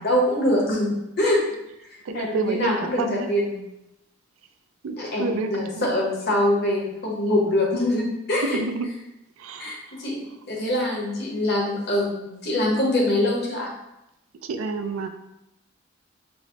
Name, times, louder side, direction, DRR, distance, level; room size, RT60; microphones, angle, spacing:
voice 1, 0.0-1.4 2.1-3.6 5.0-8.6 9.6-13.7, left 1 dB, 50° left, -2 dB, 0.8 m, -24 dB
voice 2, 2.1-3.3 4.8-5.9 8.5-8.9 9.4-10.0 14.4-15.1, right 3 dB, 75° right, 7 dB, 0.3 m, -29 dB
4.6 x 2.0 x 2.8 m, 0.87 s
head